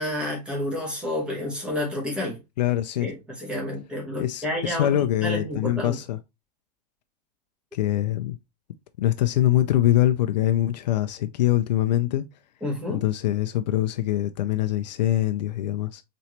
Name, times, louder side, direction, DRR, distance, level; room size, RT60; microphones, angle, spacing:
voice 1, 0.0-2.4 3.0-6.0 12.6-13.0, left 1 dB, 5° right, 0.9 m, -30 dB
voice 2, 2.6-3.1 4.2-6.2 7.7-8.4 9.0-12.2 12.9-16.0, left 13 dB, 90° left, 0.4 m, -23 dB
4.3 x 3.1 x 2.8 m
supercardioid pair, 175°, 21 cm